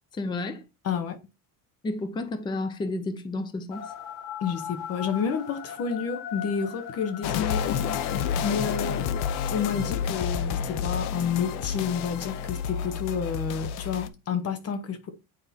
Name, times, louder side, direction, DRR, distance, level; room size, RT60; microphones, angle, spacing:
voice 1, 0.1-0.6 1.8-3.9, left 2 dB, 10° left, 0.5 m, -31 dB
voice 2, 0.8-1.2 4.4-9.1 9.5-15.1, left 6 dB, 40° left, 0.9 m, -30 dB
sound 1, 3.7-13.2, left 9 dB, 55° left, 1.3 m, -41 dB
sound 2, 7.2-14.1, left 7 dB, 80° left, 0.8 m, -29 dB
9.2 x 4.7 x 2.7 m
cardioid pair, 180°, 38 cm